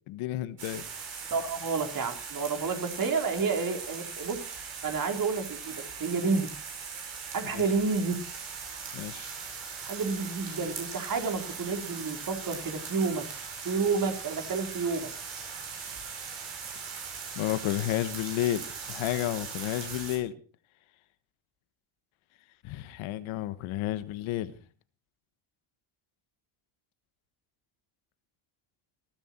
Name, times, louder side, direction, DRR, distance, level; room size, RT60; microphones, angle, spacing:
voice 1, 0.1-0.8 7.5-7.6 8.9-9.3 17.3-20.3 22.6-24.5, left 14 dB, 85° left, 13 dB, 1.4 m, -31 dB
sound 1, 0.6-20.2, right 6 dB, 65° right, 7.4 m, -40 dB
voice 2, 1.3-6.5 7.3-8.2 9.9-13.2 13.6-15.1, right 4 dB, 45° right, 4 dB, 4.0 m, -30 dB
20.0 x 13.5 x 4.5 m, 0.39 s
cardioid pair, 90°, 47 cm